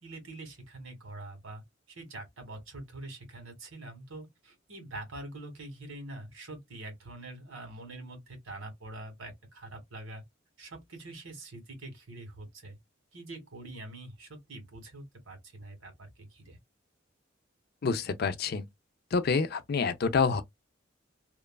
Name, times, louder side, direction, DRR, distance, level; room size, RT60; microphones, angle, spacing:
voice 1, 0.0-1.6 1.9-10.2 10.6-12.8 13.1-16.6, right 2 dB, 85° right, 1.6 m, -45 dB
voice 2, 17.8-18.7 19.1-20.4, left 5 dB, 50° left, 0.4 m, -27 dB
2.9 x 2.3 x 2.2 m
head